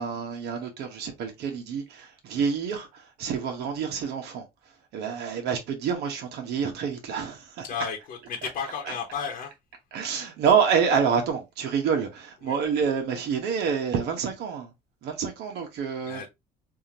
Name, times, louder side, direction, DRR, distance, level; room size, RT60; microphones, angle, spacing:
voice 1, 0.0-4.5 4.9-7.6 8.9-9.0 9.9-14.7 15.0-16.3, right 6 dB, 80° right, 1.2 m, -27 dB
voice 2, 7.7-9.5 12.4-12.5 16.1-16.3, left 7 dB, 55° left, 0.9 m, -33 dB
3.6 x 2.7 x 2.8 m
cardioid pair, 110°, 17 cm